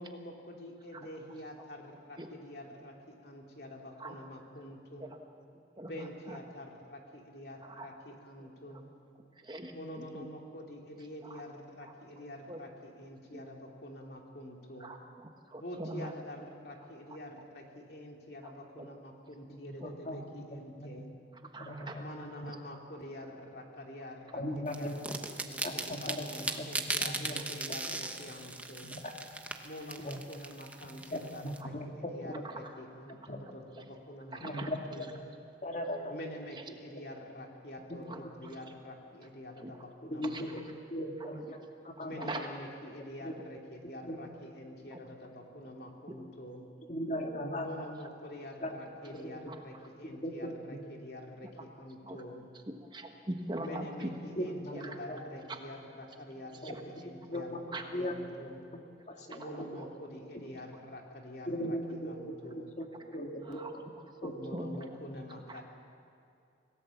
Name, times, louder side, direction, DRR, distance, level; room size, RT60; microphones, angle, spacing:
voice 1, 0.0-5.1 5.8-9.0 9.7-15.0 15.6-21.2 22.0-28.9 29.6-35.1 36.1-40.6 42.0-46.7 47.6-52.5 53.6-58.6 59.4-62.7 64.3-65.6, left 1 dB, 60° left, 1 dB, 2.9 m, -47 dB
voice 2, 5.7-6.4 7.6-7.9 8.4-8.5 8.7-8.8 9.4-10.3 11.2-11.4 11.8-12.6 13.3-13.4 14.8-16.1 18.4-18.5 18.8-18.9 19.5-19.9 21.5-22.0 31.6-31.7 32.4-32.5 33.7-33.8 34.3-34.7 38.1-38.6 39.6-39.7 40.2-40.4 41.2-41.4 42.0-42.5 44.9-45.0 49.5-49.9 52.0-52.2 52.7-54.1 54.7-55.0 55.5-55.6 56.4-56.8 57.2-57.4 57.7-57.8 59.3-59.8 61.6-61.7 63.4-63.7 64.2-64.8 65.5-65.6, right 1 dB, 25° right, 4 dB, 1.3 m, -43 dB
voice 3, 19.5-20.2 20.8-20.9 21.6-22.2 24.3-25.3 25.6-26.2 26.6-26.7 27.0-27.4 27.9-28.0 28.8-29.0 30.0-30.2 30.8-32.4 33.3-33.4 34.4-35.1 35.6-36.2 37.9-38.1 40.0-40.5 40.9-41.6 41.8-42.3 43.2-43.3 44.1-44.2 46.9-47.9 48.6-48.7 49.1-49.3 50.1-50.8 54.0-55.2 56.6-56.7 57.0-57.6 57.9-58.1 58.6-58.7 59.1-59.7 61.5-63.8 64.2-64.4 65.1-65.2, equal, 40° left, 2 dB, 2.2 m, -38 dB
sound 1, 24.7-31.6, right 2 dB, 10° right, 1.0 m, -38 dB
26.0 x 17.5 x 7.1 m, 2.5 s
head